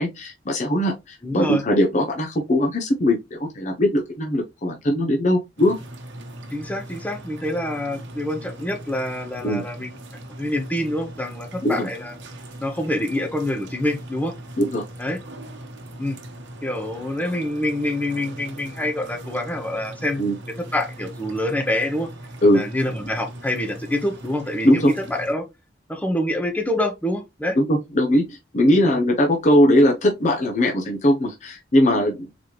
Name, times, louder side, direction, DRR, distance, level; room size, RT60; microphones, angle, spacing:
voice 1, 0.0-5.8 9.4-9.6 11.6-11.9 14.6-14.8 20.2-20.3 22.4-22.6 24.6-24.9 27.6-32.3, equal, 40° left, 0.7 m, -20 dB
voice 2, 1.2-1.6 6.5-10.0 10.4-12.1 12.6-14.3 15.0-15.2 16.0-16.2 16.6-20.2 20.7-22.1 22.5-25.4 25.9-27.6 28.8-29.0, left 1 dB, 10° left, 0.8 m, -26 dB
sound 1, 5.6-25.3, right 1 dB, 90° right, 0.9 m, -40 dB
4.0 x 3.1 x 3.1 m
head